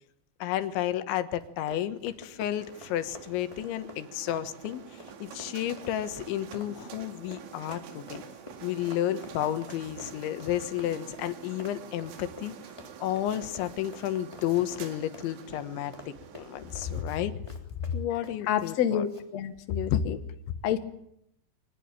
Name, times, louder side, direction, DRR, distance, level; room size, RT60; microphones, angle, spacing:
voice 1, 0.4-4.8 5.2-8.2 8.6-12.5 13.0-17.3 17.9-19.0 19.9-20.0, left 12 dB, 85° left, 10 dB, 3.6 m, -31 dB
Run, 1.4-18.8 19.1-19.3, left 1 dB, 10° left, 2.5 m, -49 dB
sound 1, 2.6-17.0, right 8 dB, 90° right, 4.5 m, -47 dB
voice 2, 18.5-19.1 19.3-20.2 20.6-20.8, left 10 dB, 65° left, 9 dB, 1.7 m, -28 dB
24.5 x 19.0 x 8.9 m, 0.76 s
omnidirectional pair, 5.2 m